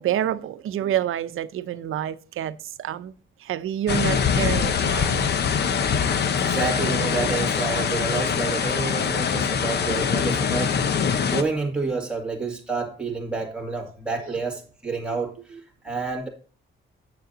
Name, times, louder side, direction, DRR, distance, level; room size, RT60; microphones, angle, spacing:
voice 1, 0.0-3.1 3.4-5.3 14.3-14.4 15.0-15.2, right 11 dB, 90° right, 0.7 m, -28 dB
sound 1, 3.9-11.4, left 6 dB, 55° left, 0.8 m, -23 dB
voice 2, 6.4-10.8 11.3-16.3, right 3 dB, 5° right, 2.1 m, -29 dB
9.4 x 6.9 x 3.9 m
wide cardioid pair, 175°, 21 cm